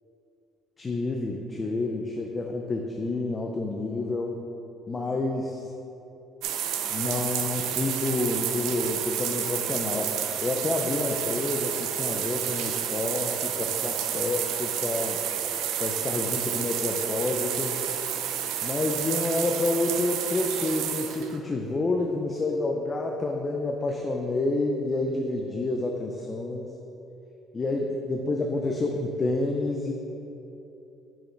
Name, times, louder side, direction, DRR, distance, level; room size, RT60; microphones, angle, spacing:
voice 1, 0.8-4.4 4.9-5.7 6.9-15.2 15.8-17.8 18.6-26.7 27.5-29.9, left 2 dB, 20° left, 1 dB, 0.4 m, -29 dB
sound 1, 6.4-21.4, right 9 dB, 80° right, 0.5 m, -30 dB
8.6 x 5.1 x 3.2 m, 3.0 s
cardioid pair, 170°, 0 cm